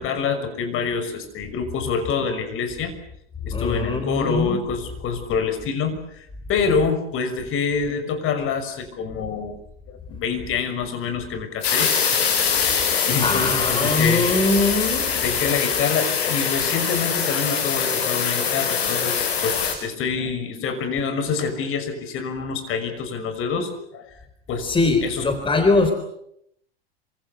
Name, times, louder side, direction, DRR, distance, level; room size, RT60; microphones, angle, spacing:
voice 1, 0.0-2.9 3.4-9.6 9.9-12.2 12.6-14.3 15.1-24.1 24.5-24.7 25.0-25.3, left 5 dB, 40° left, 9 dB, 6.1 m, -26 dB
voice 2, 3.5-4.6 13.2-15.1 24.6-25.9, left 3 dB, 15° left, 8 dB, 3.8 m, -21 dB
sound 1, 11.6-19.8, left 7 dB, 75° left, 6.1 m, -23 dB
27.0 x 25.5 x 6.9 m, 0.73 s
hypercardioid pair, 100°, 32 cm